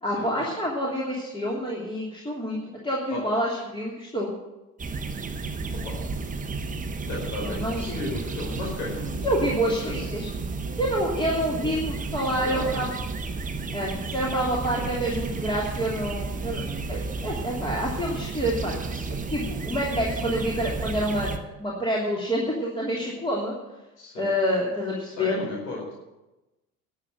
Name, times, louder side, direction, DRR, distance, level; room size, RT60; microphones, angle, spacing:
voice 1, 0.0-4.3 7.4-8.0 9.2-10.3 10.8-12.9 13.7-16.6 16.9-19.0 19.3-21.3 21.6-23.5 24.2-25.4, equal, 10° left, -4 dB, 3.0 m, -27 dB
sound 1, 4.8-21.4, right 4 dB, 20° right, 1.3 m, -32 dB
voice 2, 7.1-9.6 9.8-10.3 12.2-12.6 16.6-16.8 24.0-24.3 25.1-25.9, left 2 dB, 65° left, -3 dB, 4.8 m, -35 dB
12.5 x 8.1 x 9.2 m, 1.0 s
figure-of-eight pair, 65°, 43 cm